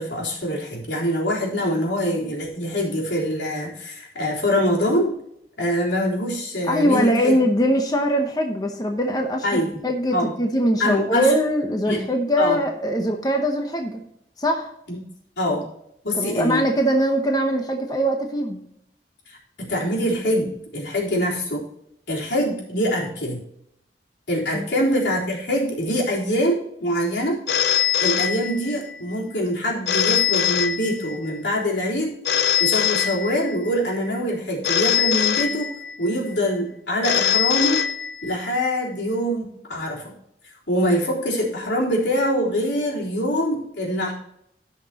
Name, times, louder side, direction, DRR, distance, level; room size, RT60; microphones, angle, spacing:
voice 1, 0.0-5.1 5.6-7.4 9.4-9.8 10.1-10.3 10.8-11.3 11.8-12.0 12.4-12.6 14.9-15.0 15.4-15.6 16.0-16.6 19.3-21.6 22.1-23.4 24.3-27.4 28.0-32.1 32.6-35.7 36.0-37.8 38.2-40.0 40.7-44.1, equal, 85° left, -5 dB, 3.8 m, -24 dB
voice 2, 6.7-14.0 14.4-14.7 16.1-18.6 24.5-24.7, equal, 20° left, 3 dB, 0.9 m, -22 dB
Telephone, 27.5-29.0 29.9-31.4 32.2-33.7 34.6-36.1 37.0-38.5, left 9 dB, 65° left, 0.6 m, -22 dB
16.0 x 5.9 x 2.9 m, 0.75 s
head